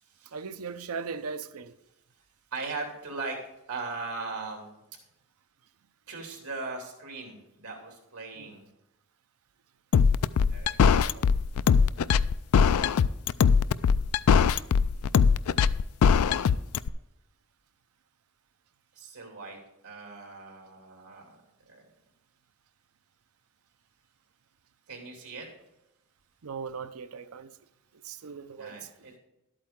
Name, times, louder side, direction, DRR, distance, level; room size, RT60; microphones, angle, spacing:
voice 1, 0.3-1.7 8.4-8.5 26.4-27.5 28.0-28.8, right 5 dB, 75° right, 0.6 m, -38 dB
voice 2, 2.5-3.4 3.7-4.7 6.1-8.7 10.5-11.3 19.0-19.6 19.8-21.4 21.7-21.8 24.9-25.5 28.6-29.2, right 3 dB, 90° right, 3.0 m, -39 dB
sound 1, 9.9-16.9, left 6 dB, 70° left, 0.3 m, -21 dB
12.0 x 8.6 x 3.7 m
head